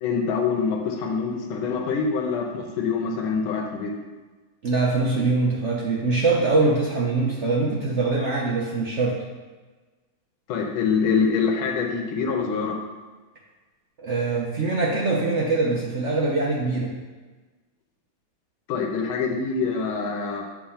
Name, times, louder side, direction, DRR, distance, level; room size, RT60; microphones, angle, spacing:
voice 1, 0.0-3.9 10.5-12.8 18.7-20.4, left 5 dB, 85° left, 1 dB, 1.6 m, -25 dB
voice 2, 4.6-9.2 14.0-16.9, right 3 dB, 60° right, -3 dB, 0.7 m, -23 dB
7.2 x 3.4 x 5.6 m, 1.3 s
omnidirectional pair, 2.2 m